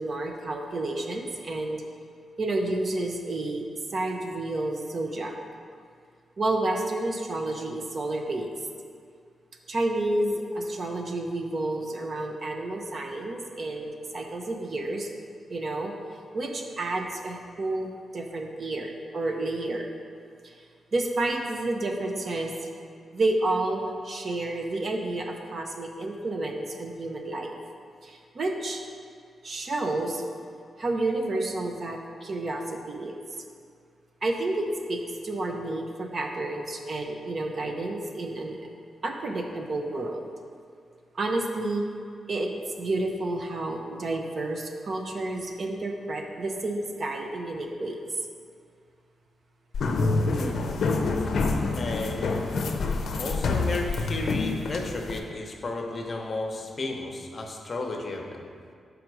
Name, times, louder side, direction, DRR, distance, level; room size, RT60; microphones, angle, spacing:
voice 1, 0.0-1.8 2.4-3.6 3.9-5.3 6.4-8.5 9.7-15.1 15.5-15.9 16.3-19.9 20.4-20.5 20.9-22.5 23.1-27.6 28.0-28.8 29.4-30.2 30.8-33.1 34.2-38.7 39.0-40.3 41.1-41.9 42.3-42.5 42.8-48.0, right 2 dB, 45° right, 3 dB, 0.7 m, -30 dB
sound 1, 49.7-55.2, left 3 dB, 70° left, 0.5 m, -27 dB
voice 2, 50.3-50.7 51.8-52.3 53.2-58.4, left 2 dB, 40° left, 2 dB, 0.8 m, -33 dB
6.4 x 4.9 x 4.7 m, 2.2 s
wide cardioid pair, 115°, 0 cm